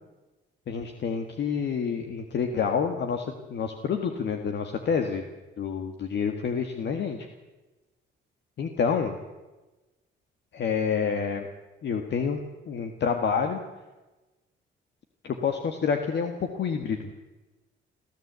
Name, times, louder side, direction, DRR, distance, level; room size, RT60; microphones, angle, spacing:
voice 1, 0.7-5.2 5.6-7.2 8.6-9.1 10.5-11.5 11.8-12.4 12.7-13.6 15.2-17.1, left 6 dB, 60° left, 5 dB, 1.8 m, -28 dB
26.0 x 14.0 x 8.2 m, 1.1 s
cardioid pair, 90°, 20 cm